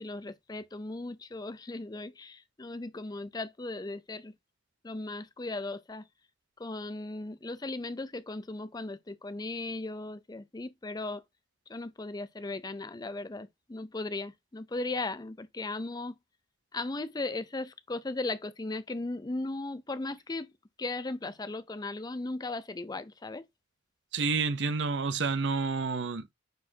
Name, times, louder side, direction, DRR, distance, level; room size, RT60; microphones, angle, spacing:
voice 1, 0.0-4.3 4.8-6.0 6.6-11.2 11.7-16.1 16.7-20.5 20.8-23.4, left 2 dB, 20° left, 0.5 m, -37 dB
voice 2, 24.1-26.3, right 4 dB, 70° right, 0.7 m, -29 dB
9.3 x 4.3 x 2.8 m
head